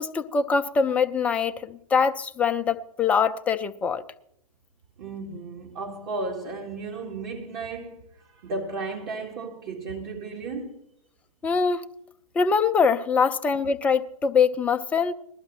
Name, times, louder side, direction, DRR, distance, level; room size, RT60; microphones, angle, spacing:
voice 1, 0.0-4.0 11.4-11.8 12.4-15.1, left 5 dB, 10° left, 0.4 m, -23 dB
voice 2, 5.0-10.8, right 3 dB, 35° right, 1.3 m, -34 dB
20.0 x 12.5 x 3.0 m
figure-of-eight pair, 120°, 19 cm